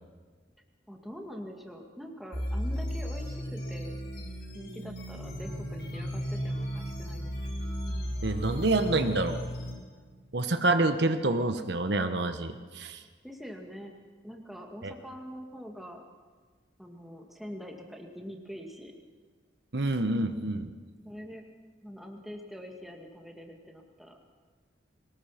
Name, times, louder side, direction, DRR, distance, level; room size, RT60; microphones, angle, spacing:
voice 1, 0.9-4.0 4.5-7.3 7.6-7.8 13.2-13.9 14.2-16.0 16.8-18.9 21.0-21.5 21.8-24.2, equal, ahead, 1 dB, 2.0 m, -44 dB
sound 1, 2.3-9.7, equal, 60° left, 7.3 m, -35 dB
Bass guitar, 5.2-11.4, right 1 dB, 85° right, 3.2 m, -48 dB
voice 2, 8.2-9.4 10.3-13.0 14.8-14.9 19.7-20.7, right 2 dB, 65° right, 8 dB, 1.1 m, -27 dB
23.0 x 19.5 x 5.9 m, 1.5 s
head